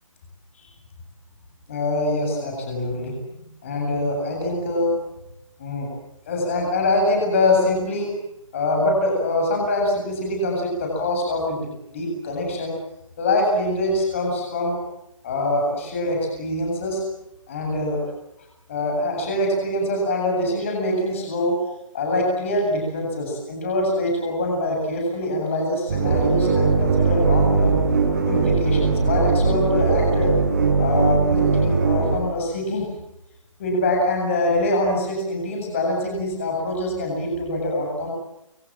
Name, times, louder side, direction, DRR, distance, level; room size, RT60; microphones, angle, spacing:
voice 1, 1.7-3.2 3.6-4.9 5.6-5.9 6.3-8.1 8.5-12.7 13.2-14.8 15.2-17.0 17.5-18.0 18.7-21.6 21.9-27.8 28.3-30.3 30.8-33.0 33.6-38.1, left 1 dB, 25° left, 0 dB, 7.9 m, -24 dB
sound 1, 25.9-32.2, right 4 dB, 30° right, 6.6 m, -20 dB
29.5 x 25.5 x 7.6 m, 0.87 s
hypercardioid pair, 175°, 17 cm